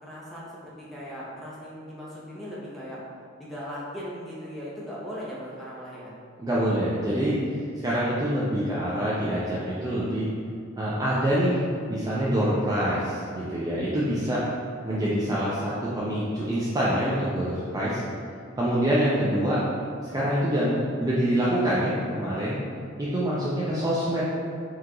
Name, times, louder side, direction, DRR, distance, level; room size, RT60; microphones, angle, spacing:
voice 1, 0.0-3.0 3.4-6.1, equal, ahead, -8 dB, 0.8 m, -38 dB
voice 2, 6.4-7.3 7.8-10.3 10.8-11.6 11.9-14.4 14.8-18.0 18.6-19.6 20.1-22.6 23.0-24.2, equal, 20° right, -8 dB, 0.4 m, -25 dB
4.6 x 2.4 x 3.7 m, 2.2 s
head